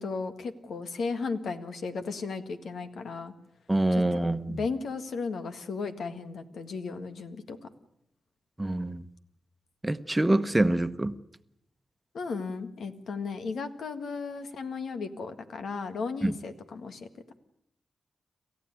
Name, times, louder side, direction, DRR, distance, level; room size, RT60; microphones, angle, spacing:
voice 1, 0.0-3.3 3.9-7.6 12.1-17.1, left 4 dB, 85° left, 8 dB, 1.8 m, -35 dB
voice 2, 3.7-4.6 8.6-9.0 9.8-11.1 16.2-16.3, right 1 dB, 15° right, 11 dB, 1.1 m, -25 dB
28.0 x 14.5 x 9.7 m, 0.81 s
cardioid pair, 75°, 0 cm